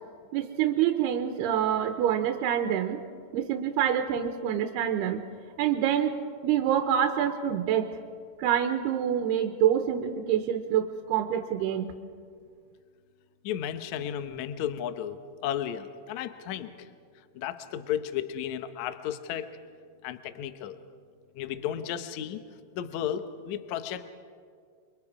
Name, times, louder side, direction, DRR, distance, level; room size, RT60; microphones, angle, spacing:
voice 1, 0.3-3.0 3.3-5.2 5.6-6.2 6.4-7.9 8.4-12.0, right 10 dB, 85° right, 6 dB, 2.9 m, -26 dB
voice 2, 13.4-16.9 17.3-19.5 20.0-20.8 21.3-22.4 22.7-24.1, left 10 dB, 85° left, 10 dB, 1.6 m, -34 dB
29.0 x 23.5 x 4.9 m, 2.1 s
omnidirectional pair, 4.7 m